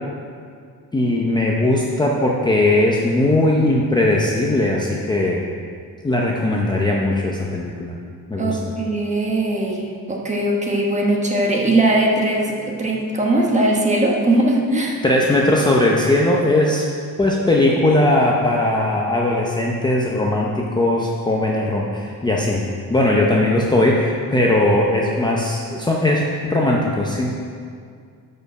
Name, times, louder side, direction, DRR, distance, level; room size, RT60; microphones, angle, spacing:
voice 1, 0.9-5.4 6.0-8.0 8.3-8.6 15.0-16.8 17.2-22.6 22.9-27.3, left 1 dB, 10° left, -3 dB, 0.7 m, -19 dB
voice 2, 8.4-15.0, right 1 dB, 20° right, -1 dB, 1.2 m, -20 dB
11.5 x 5.4 x 6.2 m, 2.2 s
cardioid pair, 175°, 36 cm